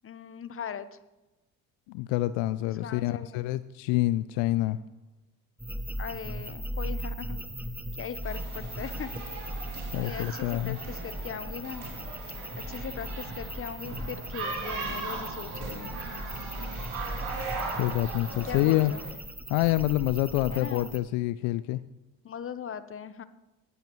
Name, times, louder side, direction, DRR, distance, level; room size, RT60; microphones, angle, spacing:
voice 1, 0.0-1.0 2.6-3.5 6.0-7.4 8.0-9.1 9.6-11.8 12.7-15.9 18.4-19.0 20.5-20.9 22.2-23.2, left 7 dB, 30° left, 13 dB, 0.9 m, -39 dB
voice 2, 1.9-4.8 9.9-10.8 17.8-18.9 19.5-21.8, left 16 dB, 70° left, 15 dB, 0.5 m, -27 dB
sound 1, 5.6-21.0, equal, 5° right, 0.7 m, -38 dB
sound 2, 8.2-19.1, right 4 dB, 75° right, 3.6 m, -39 dB
18.5 x 8.1 x 3.1 m, 1.1 s
hypercardioid pair, 60°, 45 cm